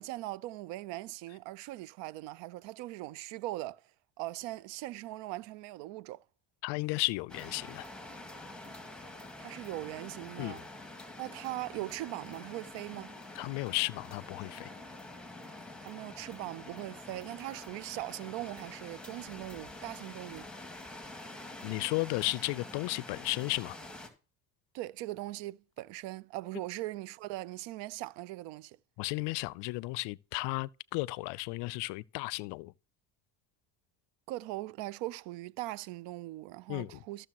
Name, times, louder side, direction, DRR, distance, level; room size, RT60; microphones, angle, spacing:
voice 1, 0.0-3.8 4.2-6.2 9.4-10.6 11.2-13.1 15.8-20.5 24.7-28.8 34.3-37.3, right 17 dB, 60° right, 0.6 m, -40 dB
voice 2, 6.6-7.8 10.4-10.6 13.3-14.7 21.6-23.8 29.0-32.7 36.7-37.0, left 23 dB, 60° left, 0.5 m, -34 dB
sound 1, 7.3-24.1, left 2 dB, ahead, 2.1 m, -47 dB
14.0 x 6.6 x 2.9 m
supercardioid pair, 85°, 47 cm